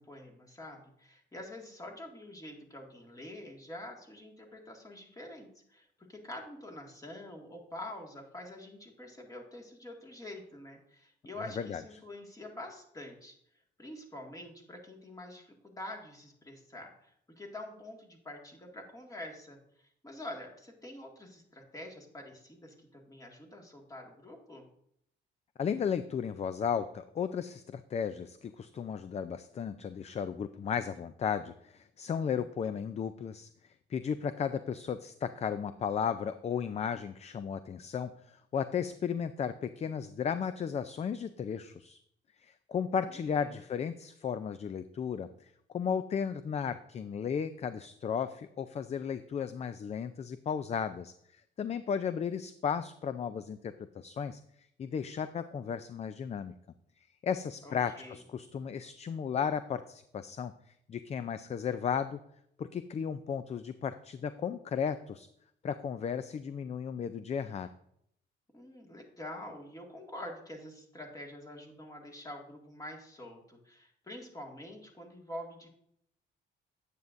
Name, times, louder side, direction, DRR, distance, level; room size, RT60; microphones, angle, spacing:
voice 1, 0.0-13.3 13.8-24.7 43.0-43.6 57.6-58.2 68.5-75.7, left 1 dB, 15° left, 1 dB, 1.9 m, -46 dB
voice 2, 25.6-33.5 33.9-42.0 42.4-45.3 45.7-54.4 54.8-56.5 57.2-60.5 60.9-62.2 62.6-65.3 65.6-67.7, left 7 dB, 35° left, 12 dB, 0.4 m, -34 dB
9.2 x 8.2 x 2.6 m, 0.71 s
cardioid pair, 90°, 20 cm